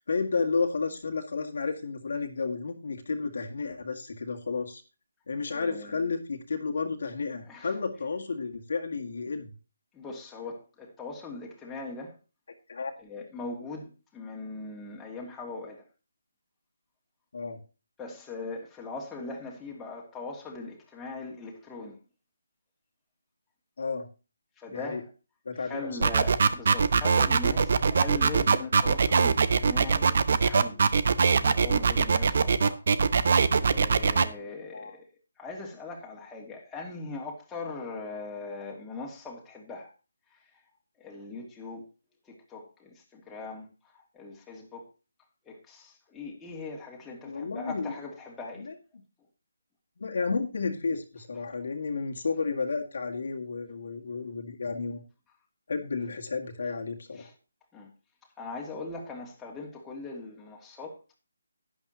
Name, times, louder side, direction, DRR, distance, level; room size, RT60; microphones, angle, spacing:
voice 1, 0.0-4.8 5.3-9.5 12.7-12.9 17.3-17.6 23.8-24.1 24.7-25.0 25.5-26.1 34.7-34.9 47.2-47.9 48.6-48.7 50.0-55.0 55.7-57.3, left 4 dB, 60° left, 1.9 m, -32 dB
voice 2, 5.5-6.1 7.5-7.7 9.9-12.1 13.0-15.8 18.0-22.0 24.6-25.0 25.6-30.8 31.4-32.8 33.5-35.0 35.4-39.9 40.3-40.4 41.0-41.8 42.3-43.7 43.9-44.9 45.5-48.7 57.2-57.3 57.7-57.9 58.4-61.0, left 3 dB, 10° left, 2.4 m, -40 dB
sound 1, 26.0-34.2, right 5 dB, 50° right, 0.8 m, -22 dB
11.5 x 11.0 x 3.0 m
figure-of-eight pair, 155°, 0 cm